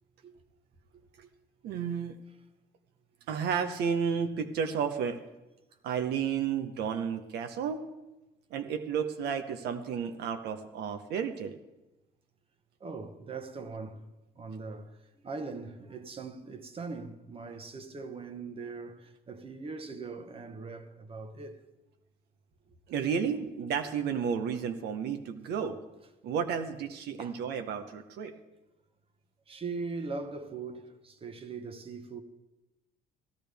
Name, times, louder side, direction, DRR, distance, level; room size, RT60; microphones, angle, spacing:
voice 1, 1.6-2.2 3.3-5.2 5.8-7.8 8.5-11.6 22.9-25.8 26.2-28.3, right 7 dB, 75° right, 0.9 m, -32 dB
voice 2, 12.8-14.0 14.3-21.6 27.2-27.4 29.5-32.2, right 4 dB, 35° right, 1.1 m, -41 dB
15.5 x 12.0 x 3.5 m
cardioid pair, 110°, 17 cm